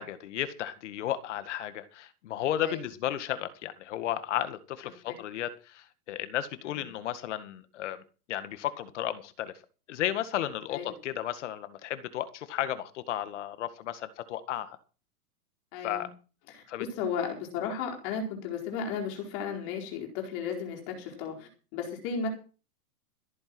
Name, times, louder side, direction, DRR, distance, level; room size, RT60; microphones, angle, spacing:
voice 1, 0.0-8.0 8.3-9.5 9.9-14.8 15.8-16.1 16.7-16.9, left 11 dB, 50° left, 12 dB, 1.9 m, -34 dB
voice 2, 15.7-16.1 16.5-16.6 17.0-22.3, left 6 dB, 30° left, 2 dB, 4.4 m, -34 dB
14.5 x 9.2 x 6.2 m, 0.34 s
supercardioid pair, 170°, 46 cm